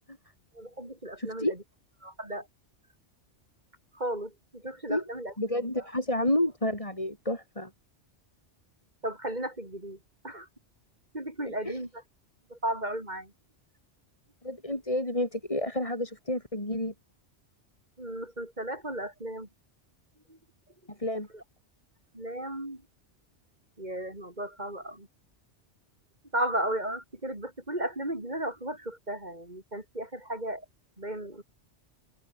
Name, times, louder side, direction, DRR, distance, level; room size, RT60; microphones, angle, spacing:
voice 1, 0.5-1.6 2.0-2.5 3.9-5.3 5.8-5.9 9.0-10.0 10.2-10.5 11.1-11.9 12.5-13.3 18.0-19.5 20.3-20.4 21.3-21.4 22.1-22.8 23.8-25.1 26.3-30.6 31.0-31.4, right 1 dB, 40° right, 5.0 m, -35 dB
voice 2, 1.2-1.5 4.9-5.0 5.4-7.7 11.6-11.8 14.4-16.9 20.9-21.3, left 1 dB, 30° left, 4.9 m, -30 dB
omnidirectional pair, 1.2 m